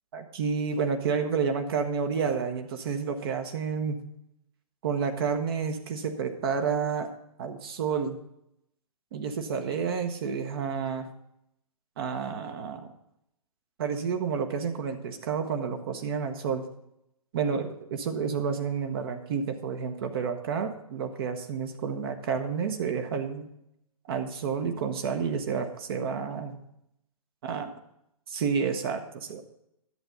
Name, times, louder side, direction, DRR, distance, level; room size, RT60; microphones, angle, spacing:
voice 1, 0.1-4.0 4.8-7.1 7.4-8.2 9.1-11.1 12.0-12.9 13.8-16.7 17.3-23.5 24.1-26.6 27.4-27.7 28.3-29.4, right 6 dB, 40° right, 6 dB, 1.1 m, -30 dB
11.0 x 7.9 x 5.4 m, 0.79 s
figure-of-eight pair, 125°, 19 cm